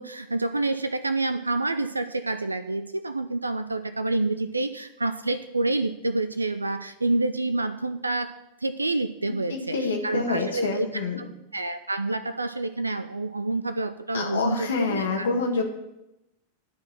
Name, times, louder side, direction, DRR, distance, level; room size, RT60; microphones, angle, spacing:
voice 1, 0.0-15.3, right 2 dB, 80° right, 11 dB, 0.4 m, -28 dB
voice 2, 9.5-11.2 14.1-15.6, left 3 dB, 65° left, 3 dB, 1.6 m, -27 dB
11.0 x 4.7 x 7.4 m, 0.89 s
figure-of-eight pair, 90°, 0 cm